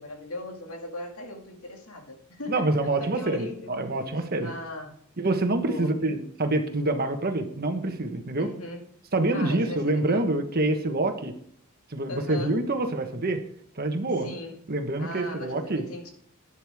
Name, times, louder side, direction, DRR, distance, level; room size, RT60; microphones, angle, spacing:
voice 1, 0.0-3.8 4.4-5.0 5.6-6.0 8.4-8.8 9.3-10.3 12.1-12.6 14.2-14.6 15.0-16.1, left 2 dB, 75° left, 2 dB, 2.3 m, -38 dB
voice 2, 2.5-4.5 5.2-8.5 9.1-11.3 11.9-13.4 13.8-14.3 14.7-15.8, right 2 dB, 45° right, 6 dB, 1.3 m, -26 dB
12.0 x 10.0 x 3.6 m, 0.66 s
head